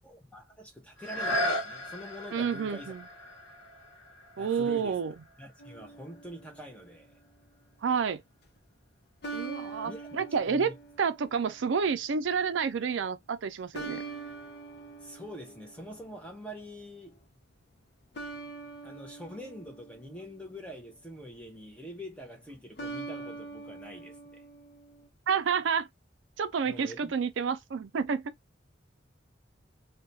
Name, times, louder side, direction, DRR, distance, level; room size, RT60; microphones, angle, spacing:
voice 1, 0.0-2.9 4.4-5.0 5.4-7.1 9.8-10.1 10.5-10.7 15.0-17.2 18.8-24.4 26.6-27.1, equal, 5° left, 0.6 m, -45 dB
sound 1, 1.0-6.6 7.2-7.3, left 1 dB, 90° left, 0.9 m, -36 dB
voice 2, 2.3-3.0 4.4-5.1 7.8-8.2 9.3-14.0 25.3-25.9 26.4-28.3, right 6 dB, 80° right, 0.4 m, -29 dB
sound 2, 5.6-6.9 9.2-11.7 13.7-16.3 18.1-20.7 22.8-25.1, right 3 dB, 60° left, 0.6 m, -43 dB
2.3 x 2.2 x 3.9 m
head